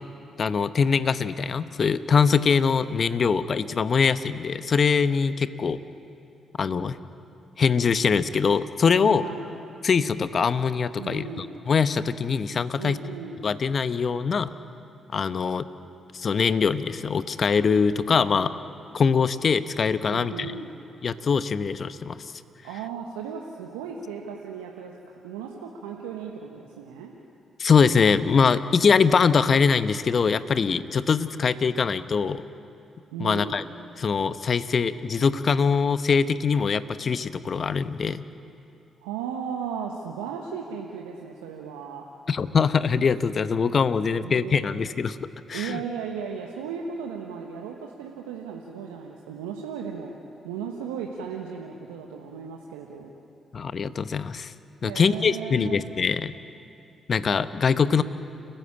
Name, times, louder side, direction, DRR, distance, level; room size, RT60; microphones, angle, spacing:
voice 1, 0.4-5.8 6.6-7.0 7.6-9.2 9.8-13.0 13.4-14.5 15.1-15.6 16.1-18.5 18.9-20.5 21.0-22.2 27.6-32.4 33.2-33.6 34.0-38.2 42.3-45.2 45.5-45.8 53.5-54.5 54.8-56.3 57.1-58.0, left 5 dB, 50° left, 13 dB, 0.9 m, -23 dB
voice 2, 9.0-9.6 11.0-11.5 12.8-13.5 20.1-20.8 22.6-27.1 33.1-33.6 39.0-42.0 44.1-44.8 45.5-50.1 50.4-53.1 54.8-55.9, right 7 dB, 85° right, 1 dB, 1.3 m, -36 dB
30.0 x 15.0 x 8.8 m, 2.8 s
hypercardioid pair, 45°, 0 cm